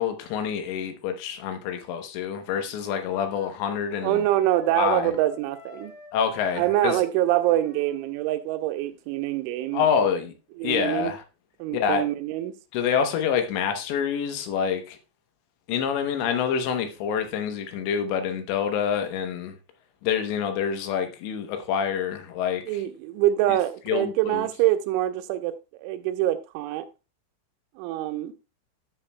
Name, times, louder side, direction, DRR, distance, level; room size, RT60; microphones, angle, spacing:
voice 1, 0.0-4.2 4.8-5.1 6.1-7.0 9.7-10.3 10.6-11.2 11.7-12.0 12.7-15.0 15.7-19.6 20.0-22.8 23.9-24.5, left 7 dB, 75° left, 3.2 m, -27 dB
sound 1, 2.9-8.1, left 1 dB, 40° left, 4.7 m, -47 dB
voice 2, 4.0-5.9 6.6-10.1 10.6-11.1 11.6-12.5 22.7-26.9 27.8-28.3, right 13 dB, 85° right, 3.1 m, -25 dB
13.0 x 7.2 x 2.2 m
omnidirectional pair, 5.4 m